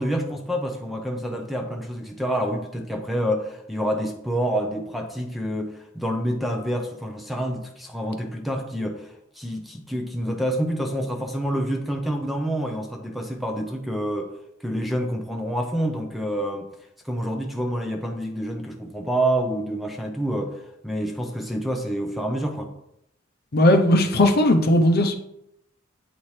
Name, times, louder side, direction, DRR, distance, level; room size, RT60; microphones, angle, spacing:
voice 1, 0.0-14.3 14.6-16.7 17.0-22.7, equal, ahead, 3 dB, 0.6 m, -27 dB
voice 2, 23.5-25.1, left 1 dB, 50° left, 5 dB, 0.7 m, -17 dB
8.1 x 4.4 x 3.2 m, 0.80 s
head